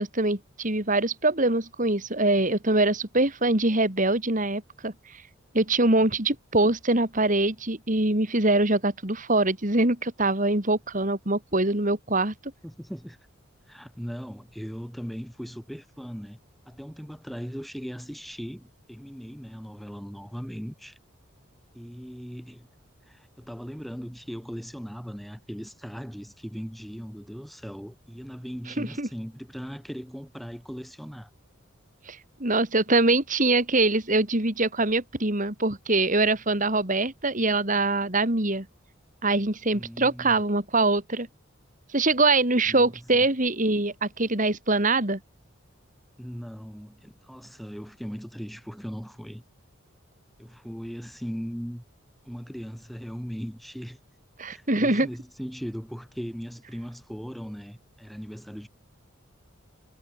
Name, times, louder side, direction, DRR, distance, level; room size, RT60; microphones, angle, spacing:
voice 1, 0.0-4.9 5.5-12.3 28.8-29.1 32.1-38.7 39.2-41.3 41.9-45.2 54.4-55.1, right 2 dB, 40° right, 3.2 m, -23 dB
voice 2, 12.6-13.2 13.7-16.4 16.7-21.0 21.7-22.7 23.1-31.3 39.7-40.5 42.7-43.0 46.2-49.4 50.4-51.8 52.2-54.0 54.5-58.7, equal, ahead, 6.9 m, -38 dB
head